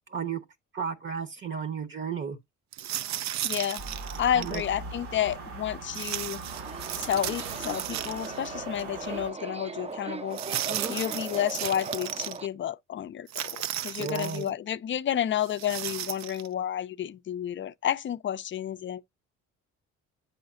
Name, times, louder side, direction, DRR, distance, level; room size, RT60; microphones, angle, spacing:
voice 1, 0.1-0.4 0.7-2.4 4.3-4.6 10.7-11.0 14.0-14.5, right 6 dB, 40° right, 0.9 m, -33 dB
sound 1, 2.7-4.7 5.9-8.5 8.8-8.9 10.3-12.4 13.3-14.5 15.4-16.5, right 12 dB, 65° right, 0.6 m, -35 dB
voice 2, 3.4-3.8 4.2-6.4 7.0-10.4 10.9-19.0, left 10 dB, 40° left, 0.4 m, -31 dB
sound 2, 3.8-9.3, right 3 dB, 90° right, 2.0 m, -41 dB
Subway metro underground, 6.5-12.5, right 3 dB, 20° right, 0.6 m, -39 dB
7.8 x 5.7 x 2.5 m
cardioid pair, 90°, 30 cm